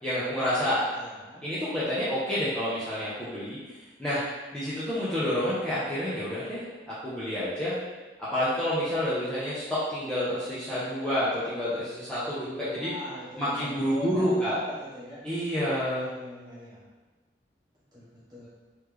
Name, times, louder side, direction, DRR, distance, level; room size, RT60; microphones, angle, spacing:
voice 1, 0.0-0.8 1.4-3.6 4.0-4.2 4.5-6.6 7.0-7.8 8.2-12.9 13.4-14.6 15.2-16.1, equal, 5° left, -12 dB, 0.7 m, -29 dB
voice 2, 0.9-1.4 12.7-15.2 16.0-16.8 17.9-18.5, left 1 dB, 25° right, -9 dB, 1.4 m, -40 dB
3.9 x 3.1 x 3.3 m, 1.3 s
head